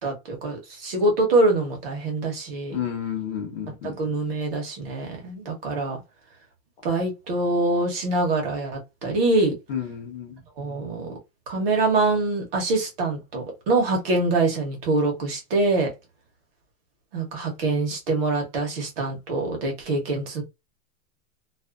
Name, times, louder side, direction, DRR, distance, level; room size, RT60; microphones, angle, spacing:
voice 1, 0.0-2.8 3.8-6.0 6.8-9.5 10.6-11.1 11.5-15.9 17.1-20.4, right 2 dB, 40° right, 0.9 m, -24 dB
voice 2, 2.7-4.0 9.7-10.4, left 9 dB, 40° left, 0.8 m, -31 dB
2.5 x 2.3 x 2.3 m
supercardioid pair, 175°, 45 cm